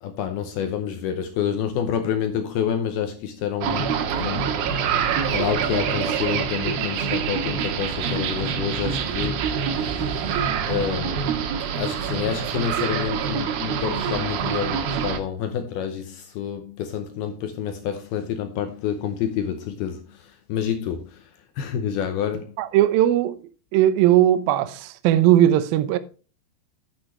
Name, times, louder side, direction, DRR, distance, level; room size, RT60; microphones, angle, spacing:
voice 1, 0.0-4.8 5.3-10.4 10.6-11.3 11.8-21.3 21.6-22.5, left 8 dB, 80° left, 2.4 m, -28 dB
sound 1, 3.6-15.2, right 7 dB, 65° right, 2.8 m, -25 dB
voice 2, 22.6-23.4 23.7-26.0, right 12 dB, 85° right, 2.1 m, -18 dB
10.0 x 9.0 x 3.2 m
omnidirectional pair, 5.3 m